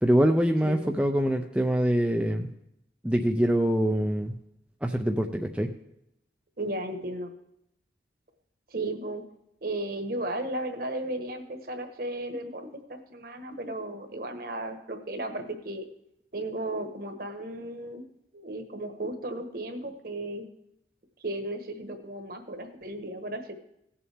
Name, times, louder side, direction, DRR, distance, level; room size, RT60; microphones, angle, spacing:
voice 1, 0.0-2.5 3.0-4.3 4.8-5.7, equal, 5° right, 3 dB, 0.4 m, -24 dB
voice 2, 0.6-0.9 6.6-7.3 8.7-9.2 9.6-15.8 16.3-18.0 18.3-20.5 21.2-23.5, right 1 dB, 50° right, 6 dB, 1.2 m, -35 dB
17.0 x 7.1 x 3.4 m, 0.80 s
head